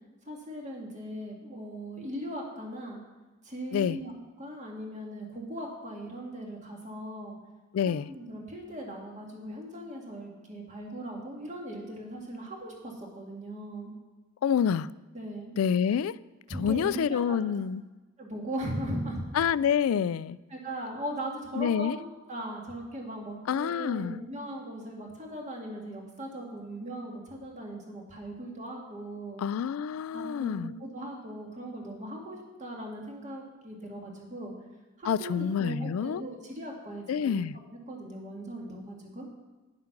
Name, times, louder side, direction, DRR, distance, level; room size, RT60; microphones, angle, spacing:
voice 1, 0.3-3.0 3.5-4.1 4.4-7.4 7.9-13.9 15.1-15.5 16.5-17.5 18.2-19.2 20.5-29.4 30.1-34.5 35.0-37.4 37.9-39.3, right 1 dB, 35° right, 0 dB, 1.9 m, -39 dB
voice 2, 7.7-8.1 14.4-14.9 15.6-16.2 16.5-17.8 19.3-20.4 21.6-22.0 23.5-24.2 29.4-30.7 35.0-36.2 37.1-37.6, left 8 dB, 80° left, 20 dB, 0.3 m, -27 dB
9.9 x 7.5 x 5.9 m, 1.2 s
head